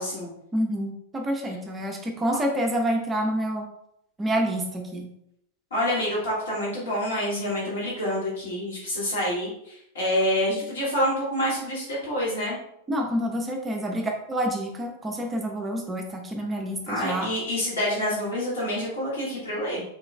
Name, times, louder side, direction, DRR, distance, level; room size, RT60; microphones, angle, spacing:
voice 1, 0.0-0.3 5.7-12.6 16.9-19.8, equal, 65° left, -6 dB, 1.2 m, -27 dB
voice 2, 0.5-3.7 4.2-5.1 12.9-17.3, equal, 15° right, 2 dB, 0.5 m, -28 dB
3.8 x 2.3 x 3.2 m, 0.79 s
figure-of-eight pair, 90°, 0 cm